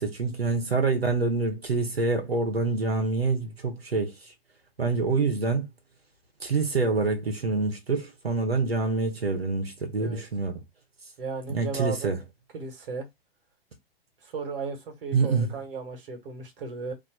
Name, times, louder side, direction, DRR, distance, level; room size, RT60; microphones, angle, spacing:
voice 1, 0.0-4.1 4.8-5.7 6.4-10.6 11.5-12.2 15.1-15.5, right 3 dB, 90° right, 1.3 m, -26 dB
voice 2, 11.2-12.1 12.5-13.1 14.2-16.9, right 4 dB, 65° right, 1.7 m, -35 dB
3.0 x 2.6 x 4.3 m
figure-of-eight pair, 100°, 30 cm